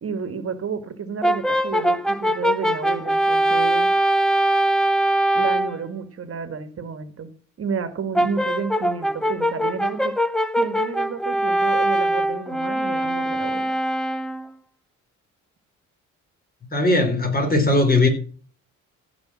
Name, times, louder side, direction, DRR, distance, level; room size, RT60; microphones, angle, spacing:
voice 1, 0.0-3.9 5.3-7.3 7.6-10.1 10.6-13.7, right 6 dB, 50° right, 1.6 m, -31 dB
Brass instrument, 1.2-5.8 8.1-14.5, right 1 dB, ahead, 0.8 m, -22 dB
voice 2, 16.7-18.1, left 2 dB, 30° left, 3.9 m, -18 dB
15.0 x 5.2 x 6.1 m
cardioid pair, 90°, 30 cm